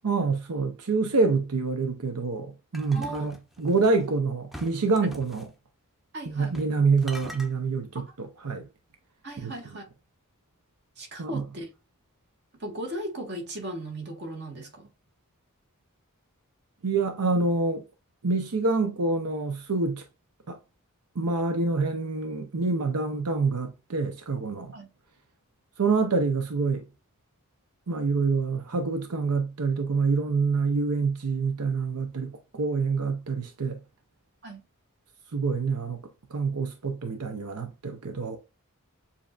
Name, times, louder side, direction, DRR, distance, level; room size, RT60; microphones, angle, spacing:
voice 1, 0.0-5.5 6.3-8.7 9.4-9.5 11.2-11.4 16.8-17.9 18.2-20.0 20.5-20.6 21.2-24.7 25.8-26.8 27.9-33.8 35.3-36.0 36.3-38.4, right 4 dB, 90° right, 0.8 m, -26 dB
sound 1, 2.7-4.0 4.5-5.5 6.4-6.8 7.0-7.5, equal, ahead, 0.6 m, -44 dB
voice 2, 2.9-3.3 6.1-6.6 7.9-8.0 9.2-9.9 11.0-11.7 12.6-14.9 24.7-24.9 34.4-34.6, right 1 dB, 50° right, 1.6 m, -37 dB
7.2 x 2.8 x 2.4 m
head